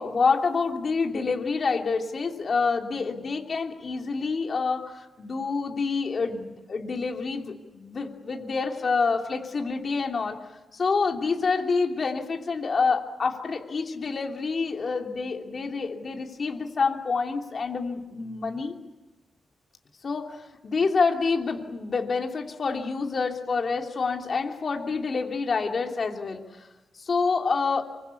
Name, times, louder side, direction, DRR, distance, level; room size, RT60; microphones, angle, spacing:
voice 1, 0.0-10.4 10.7-18.7 20.0-26.7 27.0-27.8, left 4 dB, 45° left, 2 dB, 2.9 m, -27 dB
25.5 x 24.0 x 8.5 m, 1.1 s
wide cardioid pair, 150°, 0 cm